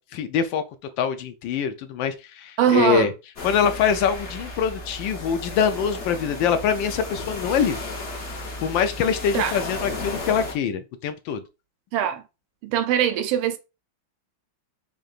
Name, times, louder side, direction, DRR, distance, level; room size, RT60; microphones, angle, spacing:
voice 1, 0.1-0.6 1.0-3.1 3.4-7.8 8.6-11.4, left 7 dB, 75° left, 1.2 m, -24 dB
voice 2, 2.6-3.1 9.3-9.5 11.9-12.2 12.6-13.6, right 10 dB, 85° right, 1.4 m, -21 dB
sound 1, 3.4-10.5, left 2 dB, 50° left, 0.9 m, -34 dB
3.7 x 3.7 x 2.4 m
omnidirectional pair, 2.2 m